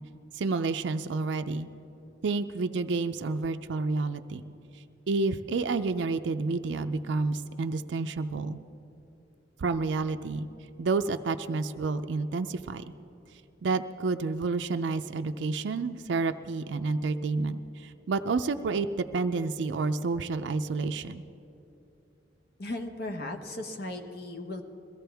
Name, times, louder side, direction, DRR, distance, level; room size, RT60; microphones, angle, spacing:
voice 1, 0.3-1.7 2.2-4.4 5.1-8.6 9.6-10.5 10.8-12.8 13.6-21.2, right 3 dB, 90° right, 8 dB, 0.4 m, -29 dB
voice 2, 22.6-24.6, left 2 dB, 60° left, 4 dB, 1.2 m, -36 dB
21.5 x 15.5 x 3.5 m, 2.8 s
head